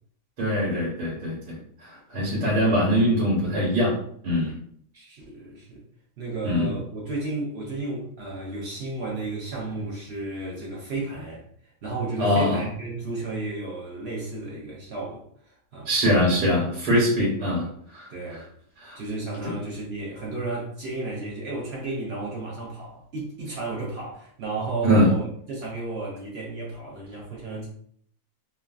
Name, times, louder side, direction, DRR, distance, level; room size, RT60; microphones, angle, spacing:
voice 1, 0.4-4.0 4.2-4.5 6.4-6.8 12.2-12.6 15.9-18.4 18.8-19.0 19.4-19.5 24.8-25.1, equal, 90° right, -6 dB, 1.6 m, -23 dB
voice 2, 4.9-5.8 6.2-11.4 11.8-15.9 18.1-18.5 18.9-27.7, right 2 dB, 55° right, -4 dB, 0.7 m, -33 dB
3.2 x 2.3 x 2.3 m, 0.62 s
omnidirectional pair, 1.7 m